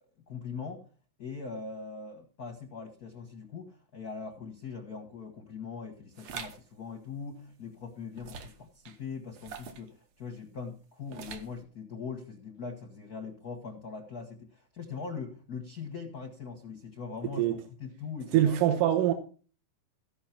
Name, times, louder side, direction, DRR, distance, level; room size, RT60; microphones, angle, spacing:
voice 1, 0.3-0.8 1.2-18.6, left 5 dB, 65° left, 0.9 m, -41 dB
sound 1, 6.2-6.6 8.1-8.6 9.3-9.9 11.1-11.6, right 6 dB, 65° right, 2.0 m, -43 dB
voice 2, 18.3-19.1, right 11 dB, 80° right, 2.6 m, -24 dB
15.5 x 5.6 x 5.9 m
omnidirectional pair, 3.8 m